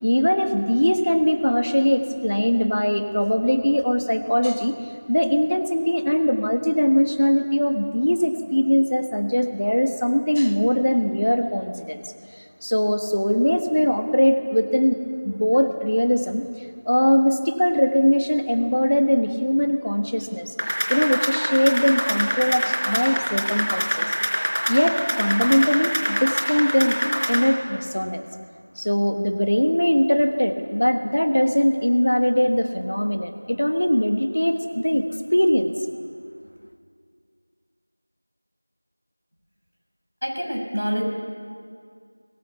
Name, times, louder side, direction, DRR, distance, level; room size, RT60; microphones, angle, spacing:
voice 1, 0.0-4.7 5.1-12.0 12.4-15.0 15.2-16.5 16.8-24.1 24.7-27.0 27.3-28.2 28.8-35.1 35.3-35.7, equal, 45° left, 8 dB, 1.3 m, -21 dB
sound 1, 20.6-27.4, equal, 55° right, 4.0 m, -25 dB
voice 2, 40.2-41.0, equal, 75° right, 1 dB, 6.5 m, -26 dB
22.5 x 19.5 x 7.0 m, 2.2 s
figure-of-eight pair, 175°, 0 cm